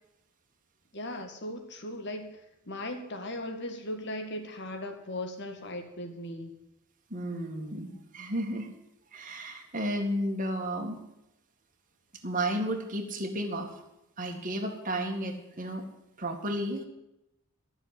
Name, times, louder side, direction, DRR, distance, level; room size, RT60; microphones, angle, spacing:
voice 1, 0.9-2.4 2.7-6.6, left 1 dB, 50° left, 6 dB, 2.1 m, -38 dB
voice 2, 7.1-8.7 9.1-11.0 12.2-13.8 14.2-15.8 16.2-16.8, right 1 dB, 35° right, 3 dB, 2.1 m, -33 dB
13.5 x 7.0 x 9.9 m, 0.88 s
head